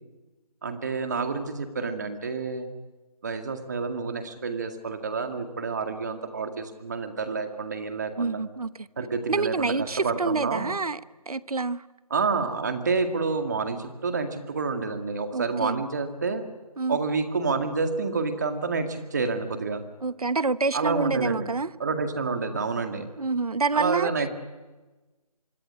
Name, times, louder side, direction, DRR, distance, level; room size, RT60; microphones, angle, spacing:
voice 1, 0.6-2.7 3.2-8.4 9.0-10.7 12.1-16.4 16.9-19.8 20.7-21.5 21.8-23.1 23.7-24.3, right 4 dB, 30° right, 2.1 m, -28 dB
voice 2, 8.2-8.9 9.3-11.0 11.3-11.8 15.3-15.8 16.8-17.0 20.0-21.7 23.2-24.1, right 3 dB, 70° right, 1.1 m, -27 dB
25.5 x 22.5 x 9.7 m
figure-of-eight pair, 170°, 20 cm